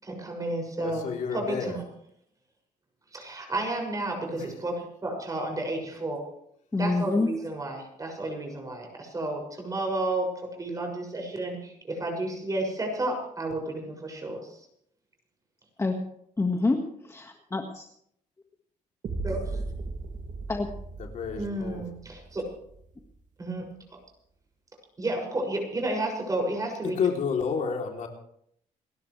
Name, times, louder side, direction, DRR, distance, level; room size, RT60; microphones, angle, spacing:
voice 1, 0.0-1.8 3.1-6.3 6.8-14.6 19.2-19.6 21.4-22.4 23.4-23.7 25.0-27.0, right 2 dB, 25° right, 2 dB, 6.8 m, -32 dB
voice 2, 0.8-1.8 4.3-4.5 21.0-21.8 26.8-28.1, left 6 dB, 60° left, 1 dB, 3.3 m, -30 dB
voice 3, 6.7-7.3 15.8-16.0 16.4-17.8 20.5-20.7, left 3 dB, 20° left, 3 dB, 1.7 m, -27 dB
sound 1, 19.0-23.0, right 3 dB, 60° right, 2.7 m, -37 dB
28.5 x 12.5 x 3.3 m, 0.69 s
cardioid pair, 105°, 14 cm